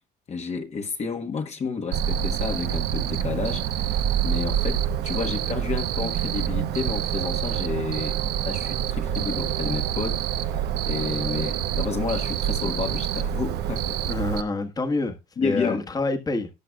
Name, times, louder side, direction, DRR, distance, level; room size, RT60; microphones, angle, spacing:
voice 1, 0.3-8.2 8.4-14.0 15.4-15.8, left 5 dB, 40° left, 1.4 m, -31 dB
Cricket, 1.9-14.4, right 10 dB, 75° right, 1.0 m, -26 dB
voice 2, 14.1-15.2 15.4-16.5, left 3 dB, 20° left, 1.4 m, -27 dB
18.0 x 6.7 x 2.4 m
cardioid pair, 110°, 17 cm